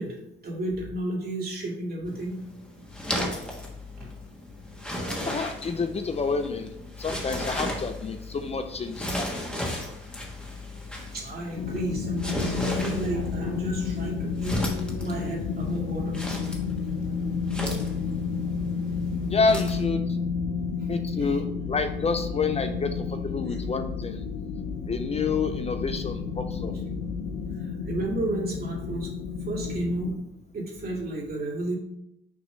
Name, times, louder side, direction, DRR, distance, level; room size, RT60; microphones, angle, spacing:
voice 1, 0.0-2.4 4.0-4.1 11.1-16.2 17.0-17.1 20.8-20.9 21.2-21.4 27.5-29.1 29.5-30.1 30.5-31.8, right 2 dB, 50° right, -2 dB, 2.2 m, -32 dB
sound 1, 2.1-19.8, equal, 5° left, 1.3 m, -36 dB
voice 2, 5.3-6.7 7.0-9.5 19.3-20.0 20.9-24.2 24.9-26.7, left 4 dB, 30° left, 8 dB, 0.5 m, -28 dB
sound 2, 11.6-30.1, left 5 dB, 85° left, 0.7 m, -31 dB
6.1 x 3.0 x 5.4 m, 0.84 s
cardioid pair, 90°, 20 cm